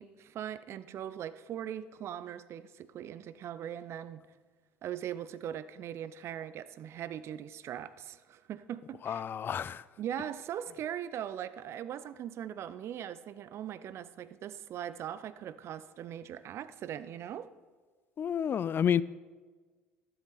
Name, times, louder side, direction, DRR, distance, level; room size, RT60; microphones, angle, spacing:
voice 1, 0.0-4.2 4.8-9.2 10.0-17.5, right 10 dB, 50° right, 0.6 m, -40 dB
voice 2, 9.0-9.8 18.2-19.0, left 8 dB, 40° left, 0.4 m, -30 dB
13.0 x 11.0 x 4.2 m
figure-of-eight pair, 60°, 6 cm